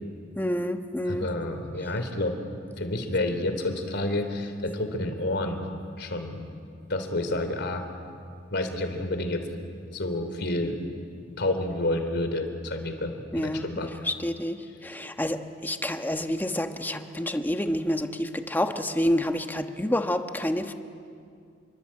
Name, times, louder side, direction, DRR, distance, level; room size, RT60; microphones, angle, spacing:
voice 1, 0.4-1.3 13.3-13.7 14.0-20.7, left 1 dB, 10° left, 6 dB, 1.2 m, -28 dB
voice 2, 1.1-2.3 2.8-5.7 6.0-6.4 6.9-7.8 8.5-9.5 9.9-10.8 11.3-13.9, left 1 dB, 60° left, 7 dB, 3.4 m, -29 dB
28.5 x 23.5 x 8.7 m, 2.3 s
head